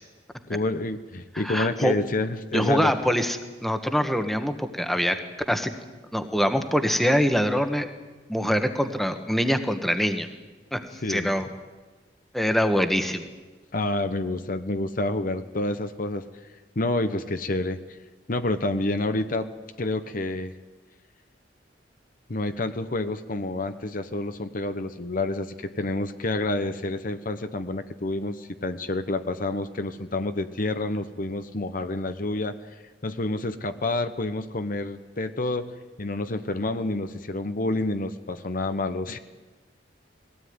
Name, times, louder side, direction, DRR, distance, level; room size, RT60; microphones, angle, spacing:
voice 1, 0.5-2.9 11.0-11.3 13.7-16.2 16.8-17.8 18.3-20.5 22.3-32.6 33.0-35.7 36.0-39.2, left 2 dB, 50° left, 9 dB, 1.0 m, -28 dB
voice 2, 1.4-1.9 2.5-5.2 5.5-5.7 6.1-7.9 8.3-10.3 10.7-10.8 11.1-11.5 12.3-13.2, equal, ahead, 7 dB, 1.4 m, -24 dB
20.5 x 17.0 x 9.5 m, 1.3 s
head